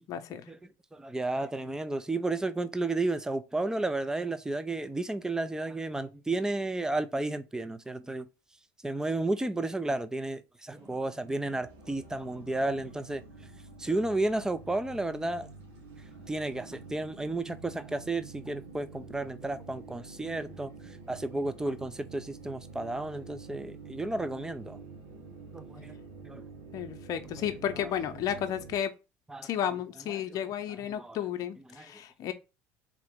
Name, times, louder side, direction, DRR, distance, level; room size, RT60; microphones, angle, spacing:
voice 1, 0.1-0.4 26.7-28.9 29.4-32.3, left 9 dB, 55° left, 0.7 m, -33 dB
voice 2, 0.9-8.3 8.8-13.2 13.8-15.5 16.3-24.8 25.5-25.9 26.2-26.4 27.4-27.5 29.3-29.5 30.2-30.4 31.0-31.2 31.7-31.9, right 2 dB, 10° right, 0.5 m, -32 dB
sound 1, 10.7-28.8, right 4 dB, 90° right, 1.6 m, -48 dB
3.7 x 2.9 x 3.5 m
supercardioid pair, 85°, 7 cm